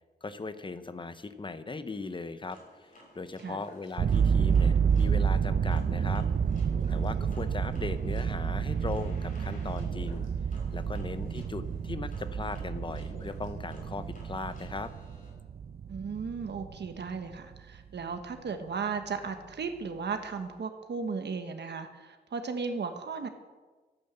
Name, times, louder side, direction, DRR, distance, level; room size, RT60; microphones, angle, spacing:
voice 1, 0.2-6.3 6.9-10.2 10.7-14.9, left 3 dB, 30° left, 12 dB, 0.8 m, -38 dB
sound 1, 2.5-15.3, left 1 dB, 50° left, 5.4 m, -55 dB
sound 2, 4.0-17.6, right 7 dB, 65° right, 0.6 m, -29 dB
voice 2, 15.9-23.3, right 5 dB, 85° right, 7 dB, 1.2 m, -35 dB
13.0 x 11.0 x 8.0 m, 1.3 s
wide cardioid pair, 160°, 17 cm